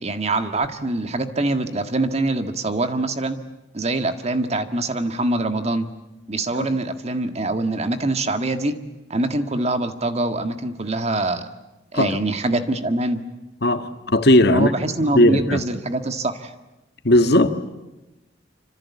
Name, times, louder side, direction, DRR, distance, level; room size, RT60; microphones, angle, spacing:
voice 1, 0.0-3.4 3.7-5.9 6.3-8.7 9.1-11.5 11.9-13.2 14.5-16.5, right 2 dB, 35° right, 1.8 m, -24 dB
voice 2, 13.6-14.7 15.1-15.6 17.0-17.5, left 1 dB, 60° left, 1.7 m, -17 dB
27.0 x 26.0 x 8.5 m
head